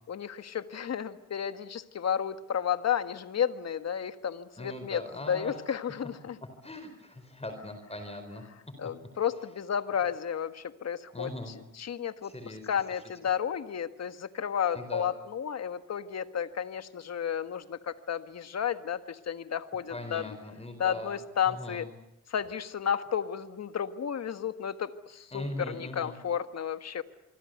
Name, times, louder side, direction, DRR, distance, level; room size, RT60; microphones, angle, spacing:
voice 1, 0.1-5.0 5.3-6.4 8.8-11.3 11.7-20.2 20.8-21.8 22.3-27.0, left 8 dB, 60° left, 10 dB, 1.6 m, -32 dB
voice 2, 4.6-5.6 6.6-8.5 11.1-11.6 12.2-12.6 14.7-15.1 19.9-21.2 21.5-21.9 25.3-26.2, left 1 dB, 20° left, 7 dB, 4.4 m, -40 dB
25.5 x 24.5 x 8.1 m, 0.85 s
cardioid pair, 75°, 29 cm